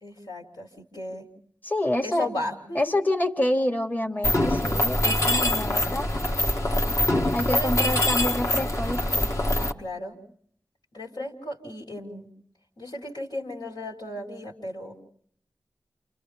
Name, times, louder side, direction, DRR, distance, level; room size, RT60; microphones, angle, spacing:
voice 1, 0.0-1.3 2.0-3.0 7.5-7.7 9.6-10.2 10.9-12.3 12.8-14.9, left 1 dB, 80° left, -2 dB, 4.1 m, -35 dB
voice 2, 1.6-2.3 2.8-6.1 7.3-9.3, left 1 dB, 25° left, 3 dB, 1.9 m, -27 dB
Mechanisms, 4.2-9.7, left 1 dB, 45° left, 1.4 m, -24 dB
30.0 x 28.5 x 3.5 m, 0.62 s
cardioid pair, 45°, 7 cm